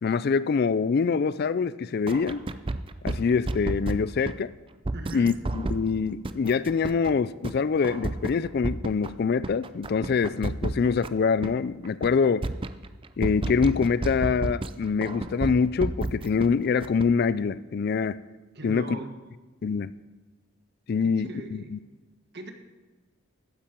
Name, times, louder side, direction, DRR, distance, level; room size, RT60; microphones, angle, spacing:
voice 1, 0.0-2.4 3.0-4.5 5.1-12.4 13.2-18.2 18.6-19.0 19.6-19.9 20.9-21.8, left 5 dB, 45° left, 16 dB, 0.3 m, -25 dB
sound 1, 2.1-4.3 4.9-5.8 6.3-7.1 7.4-7.5 7.8-9.1 9.4-11.5 11.8-12.1 12.4-14.7 15.0-16.5 16.8-17.0, right 2 dB, 25° right, 0.4 m, -31 dB
voice 2, 4.9-5.3 18.5-19.4 21.0-21.7 22.3-22.5, right 1 dB, 50° right, 5 dB, 1.4 m, -39 dB
14.5 x 10.0 x 4.5 m, 1.2 s
head